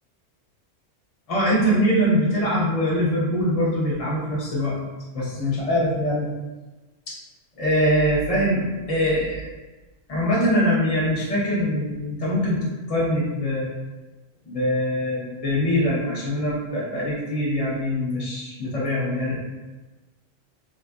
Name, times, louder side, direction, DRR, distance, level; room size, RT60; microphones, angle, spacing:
voice 1, 1.3-4.8 5.1-6.3 7.1-7.2 7.6-9.5 10.1-13.7 14.4-19.3, equal, 30° left, -5 dB, 0.8 m, -23 dB
4.2 x 2.5 x 2.3 m, 1.2 s
omnidirectional pair, 1.3 m